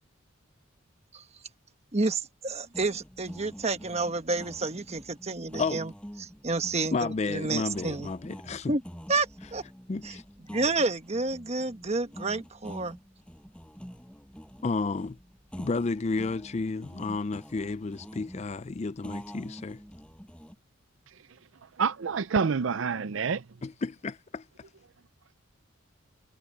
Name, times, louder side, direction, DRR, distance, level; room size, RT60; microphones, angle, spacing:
voice 1, 1.9-5.9 6.2-8.1 8.7-8.8 9.1-9.6 10.0-10.1 10.5-13.0, right 3 dB, 30° right, 1.2 m, -30 dB
sound 1, 2.7-20.6, equal, 5° left, 5.6 m, -46 dB
voice 2, 6.9-8.8 9.9-10.2 14.6-15.2 15.6-19.8 23.6-24.4, left 3 dB, 30° left, 0.4 m, -31 dB
voice 3, 21.8-23.4, right 5 dB, 65° right, 0.5 m, -27 dB
head